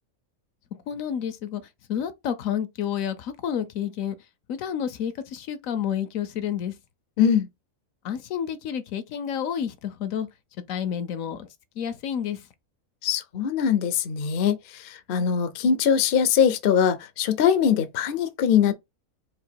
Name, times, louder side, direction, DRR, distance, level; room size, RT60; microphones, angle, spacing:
voice 1, 0.9-1.6 1.9-4.1 4.5-6.7 8.0-10.3 10.7-11.5 11.8-12.4, left 8 dB, 75° left, 1.0 m, -29 dB
voice 2, 7.2-7.5 13.0-18.7, left 8 dB, 55° left, 0.6 m, -22 dB
3.8 x 2.7 x 4.4 m
omnidirectional pair, 1.5 m